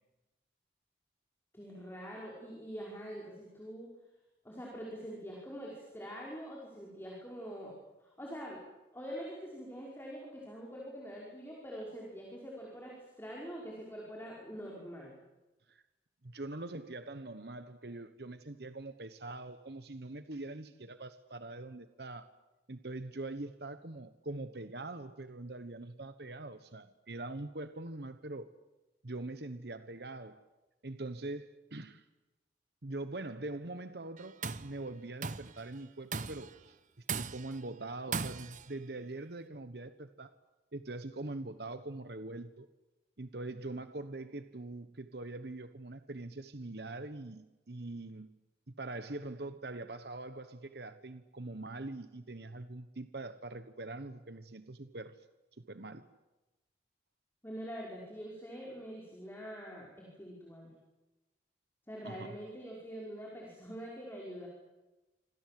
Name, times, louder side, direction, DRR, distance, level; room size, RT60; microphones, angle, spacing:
voice 1, 1.5-3.9 4.4-7.7 8.0-8.6 8.9-15.1 57.4-60.7 61.9-64.5, equal, 15° left, -3 dB, 5.3 m, -44 dB
voice 2, 16.2-22.3 22.7-28.5 29.0-30.4 30.8-32.1 32.8-40.3 40.7-42.7 43.2-48.3 48.7-55.2 55.6-56.1 62.0-62.4, right 2 dB, 60° right, 10 dB, 1.2 m, -43 dB
Tools, 34.2-34.7 35.2-35.6 36.1-36.6 37.1-37.6 38.1-38.7, right 5 dB, 45° right, 0.9 m, -38 dB
26.5 x 26.5 x 7.7 m, 1.1 s
head